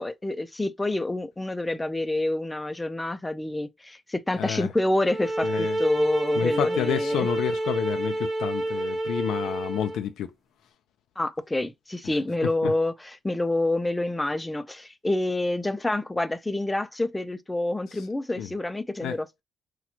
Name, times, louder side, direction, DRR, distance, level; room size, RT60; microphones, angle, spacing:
voice 1, 0.0-7.3 11.2-19.4, left 2 dB, 15° left, 0.4 m, -27 dB
voice 2, 4.4-4.7 5.4-5.8 6.4-10.3 12.6-12.7 18.4-18.5 19.0-19.2, left 10 dB, 85° left, 0.3 m, -29 dB
sound 1, 5.0-10.0, right 1 dB, 35° right, 0.8 m, -28 dB
4.1 x 2.2 x 2.8 m
cardioid pair, 90°, 0 cm